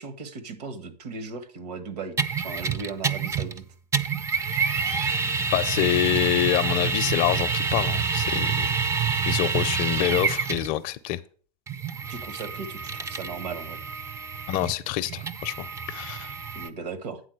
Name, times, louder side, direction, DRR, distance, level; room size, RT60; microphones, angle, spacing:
voice 1, 0.0-2.2 2.4-3.6 10.0-10.1 12.1-13.8 16.5-17.2, right 4 dB, 65° right, 1.5 m, -37 dB
sound 1, 2.2-3.6 3.9-10.7 11.7-16.7, right 5 dB, 15° right, 0.4 m, -27 dB
voice 2, 5.5-8.8 9.3-11.2 14.5-16.3, left 14 dB, 40° left, 0.5 m, -26 dB
8.8 x 4.0 x 6.4 m
hypercardioid pair, 125°, 21 cm